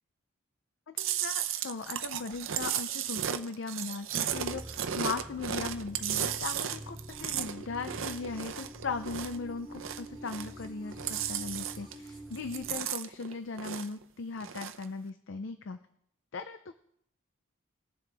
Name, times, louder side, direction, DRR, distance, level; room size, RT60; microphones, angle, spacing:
voice 1, 0.9-15.8 16.3-16.7, left 4 dB, 65° left, 10 dB, 0.5 m, -38 dB
Chewing mastication, 1.0-9.4 9.7-10.7 10.9-12.1 12.3-14.0 14.4-14.8, right 9 dB, 75° right, 0.6 m, -34 dB
sound 1, 4.3-12.7, right 1 dB, ahead, 3.7 m, -46 dB
20.0 x 7.4 x 3.4 m, 0.70 s
head